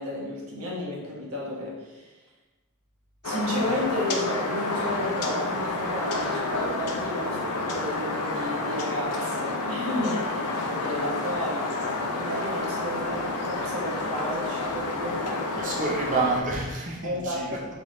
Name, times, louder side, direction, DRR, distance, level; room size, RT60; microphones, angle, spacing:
voice 1, 0.0-2.2 3.2-11.7 12.1-16.0 17.0-17.6, left 1 dB, 75° right, -3 dB, 1.1 m, -32 dB
sound 1, 3.2-16.4, left 2 dB, 85° left, 0.6 m, -29 dB
voice 2, 15.5-17.5, right 3 dB, 35° right, -3 dB, 0.7 m, -28 dB
4.1 x 3.4 x 3.1 m, 1.2 s
head